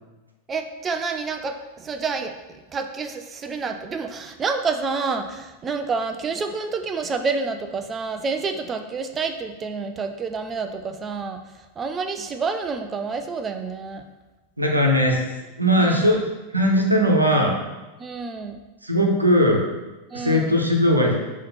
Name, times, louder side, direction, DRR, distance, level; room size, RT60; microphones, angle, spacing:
voice 1, 0.5-2.4 2.7-11.4 11.8-14.0 15.8-16.2 18.0-18.6 20.1-20.6, right 4 dB, 20° right, 7 dB, 0.6 m, -28 dB
voice 2, 14.6-15.2 15.6-16.2 16.5-17.5 18.8-19.6 20.1-21.2, equal, 85° right, 0 dB, 0.9 m, -19 dB
5.7 x 3.1 x 5.6 m, 1.1 s
figure-of-eight pair, 90°, 0 cm